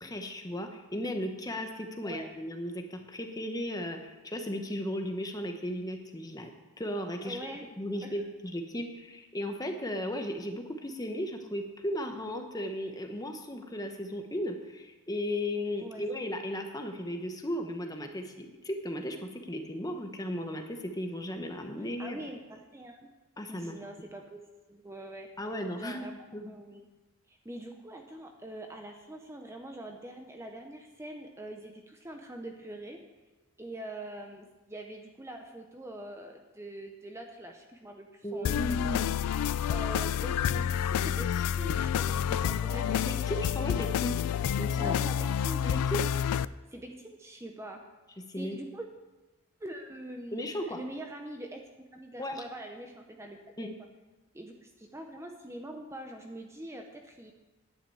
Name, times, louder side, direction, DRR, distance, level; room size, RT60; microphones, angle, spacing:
voice 1, 0.0-7.5 7.8-22.2 23.4-23.8 25.4-26.5 38.2-39.1 43.1-44.2 44.6-45.0 45.6-46.0 48.3-48.6 50.3-50.8 52.2-52.4 53.6-53.7, left 1 dB, 15° left, 5 dB, 0.9 m, -36 dB
voice 2, 2.0-2.3 7.2-7.7 8.0-8.1 15.8-16.3 22.0-23.0 23.5-24.4 24.7-25.3 25.8-26.1 26.5-26.9 27.3-33.0 33.6-38.7 39.7-43.0 44.8-45.7 46.7-47.8 48.4-48.9 49.6-51.6 51.9-53.7 54.3-57.3, right 1 dB, 10° right, 3 dB, 0.7 m, -44 dB
sound 1, 38.4-46.4, left 9 dB, 90° left, 0.3 m, -29 dB
10.5 x 5.8 x 8.5 m, 1.1 s
head